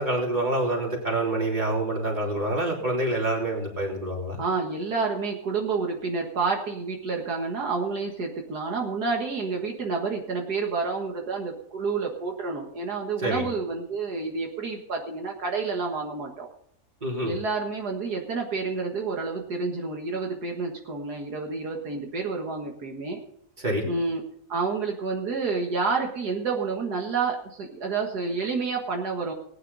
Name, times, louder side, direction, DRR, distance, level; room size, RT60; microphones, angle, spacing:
voice 1, 0.0-4.4 13.2-13.4 17.0-17.3 23.6-23.9, right 1 dB, 30° right, -2 dB, 3.7 m, -27 dB
voice 2, 4.4-16.5 17.2-23.2 23.9-24.2 24.5-29.3, right 4 dB, 80° right, 1 dB, 2.2 m, -29 dB
19.5 x 9.7 x 4.1 m, 0.68 s
omnidirectional pair, 1.7 m